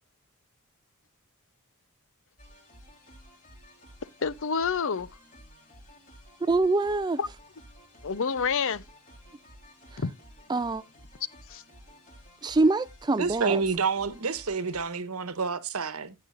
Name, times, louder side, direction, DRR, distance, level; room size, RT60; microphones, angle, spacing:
sound 1, 2.4-14.8, equal, 40° left, 3.6 m, -53 dB
voice 1, 4.2-5.1 7.2-7.3 8.0-8.8 10.0-10.1 11.5-11.6, left 5 dB, 60° left, 0.7 m, -28 dB
voice 2, 6.4-7.2 10.5-10.8 12.4-13.6, right 3 dB, 20° right, 0.4 m, -24 dB
voice 3, 13.2-16.1, right 5 dB, 70° right, 1.1 m, -29 dB
10.5 x 9.2 x 2.5 m
head